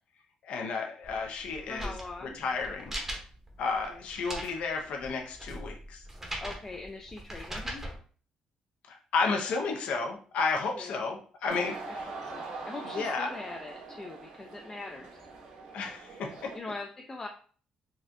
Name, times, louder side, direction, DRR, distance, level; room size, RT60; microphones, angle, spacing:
voice 1, 0.4-2.0 2.2-2.9 3.6-6.0 8.9-12.1 12.9-13.3 15.7-16.5, left 4 dB, 75° left, 2 dB, 0.6 m, -32 dB
sound 1, 1.0-8.0, right 1 dB, 20° right, 0.8 m, -41 dB
voice 2, 1.7-2.4 3.9-4.0 6.4-7.8 10.7-11.0 11.9-12.0 12.2-15.2 16.5-17.3, left 3 dB, 25° left, 2 dB, 0.4 m, -42 dB
sound 2, 11.5-16.6, right 3 dB, 80° right, 0.7 m, -42 dB
4.1 x 2.3 x 2.5 m, 0.43 s
cardioid pair, 110°, 2 cm